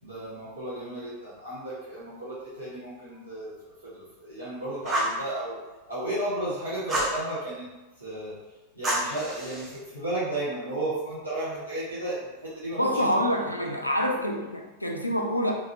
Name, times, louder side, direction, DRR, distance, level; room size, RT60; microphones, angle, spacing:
voice 1, 0.0-5.5 5.9-7.7 8.0-8.4 8.7-13.1, right 1 dB, 80° right, -11 dB, 1.3 m, -34 dB
Fire, 4.8-5.2 6.9-7.2 8.8-9.8, right 1 dB, 20° right, 0.7 m, -28 dB
voice 2, 12.8-15.5, equal, 90° left, 1 dB, 0.3 m, -26 dB
2.7 x 2.5 x 2.5 m, 1.1 s
figure-of-eight pair, 90°, 0 cm